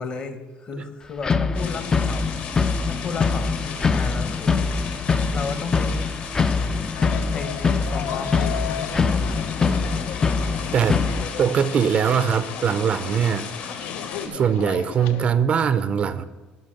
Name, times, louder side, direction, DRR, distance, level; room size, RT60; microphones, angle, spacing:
voice 1, 0.0-2.3 2.6-4.7 5.0-5.9 6.6-6.7 7.3-9.1 9.6-9.9, left 4 dB, 35° left, 10 dB, 1.1 m, -34 dB
sound 1, 1.2-11.3, left 4 dB, 20° left, 0.4 m, -23 dB
sound 2, 1.5-14.3, left 6 dB, 60° left, 1.7 m, -36 dB
sound 3, 7.0-15.3, left 10 dB, 75° left, 0.6 m, -36 dB
voice 2, 10.7-11.0 11.4-13.8 14.2-16.2, right 7 dB, 40° right, 13 dB, 0.5 m, -22 dB
13.5 x 5.0 x 7.6 m, 1.3 s
cardioid pair, 140°, 3 cm